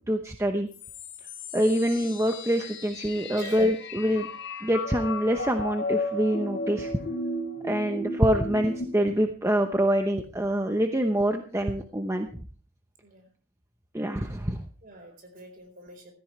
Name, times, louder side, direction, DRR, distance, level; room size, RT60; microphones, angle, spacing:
voice 1, 0.1-0.7 1.5-4.3 4.6-6.9 7.6-12.3 13.9-14.6, equal, 15° right, 5 dB, 0.8 m, -25 dB
sound 1, 0.7-8.8, left 2 dB, 55° left, 3.3 m, -35 dB
voice 2, 3.2-3.7 13.0-13.3 14.8-16.1, right 2 dB, 40° right, 5 dB, 4.4 m, -45 dB
15.5 x 14.0 x 3.2 m, 0.40 s
head